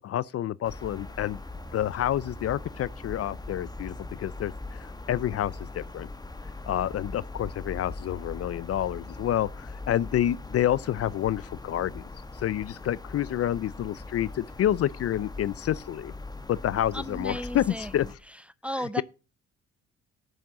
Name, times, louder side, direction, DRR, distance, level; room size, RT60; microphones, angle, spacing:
voice 1, 0.0-1.4 1.7-6.1 6.7-12.0 12.4-16.1 16.5-18.1 18.8-19.0, left 11 dB, 50° left, 0.5 m, -28 dB
sound 1, 0.6-18.2, left 2 dB, 15° left, 1.2 m, -41 dB
voice 2, 16.9-17.9 18.6-19.0, equal, 5° right, 0.6 m, -34 dB
8.8 x 6.4 x 7.2 m
cardioid pair, 90°, 30 cm